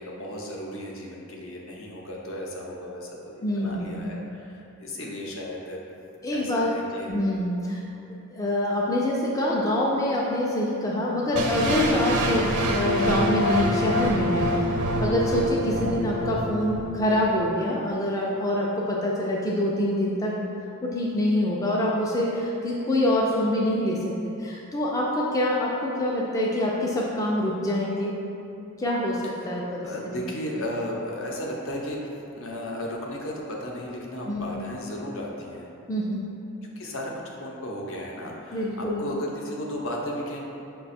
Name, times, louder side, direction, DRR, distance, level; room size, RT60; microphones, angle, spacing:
voice 1, 0.0-5.8 6.3-7.1 15.3-15.6 29.4-29.5 29.8-35.7 36.8-40.4, left 1 dB, 60° left, -2 dB, 0.7 m, -35 dB
voice 2, 3.4-4.0 6.2-6.7 7.1-7.8 8.3-20.3 20.8-28.1 28.8-29.9 30.2-30.3 34.3-34.6 35.9-36.3 38.5-39.0, left 1 dB, 15° left, -4 dB, 0.3 m, -25 dB
sound 1, 11.3-17.4, equal, 90° right, 0.5 m, -26 dB
5.6 x 2.3 x 4.1 m, 2.7 s
head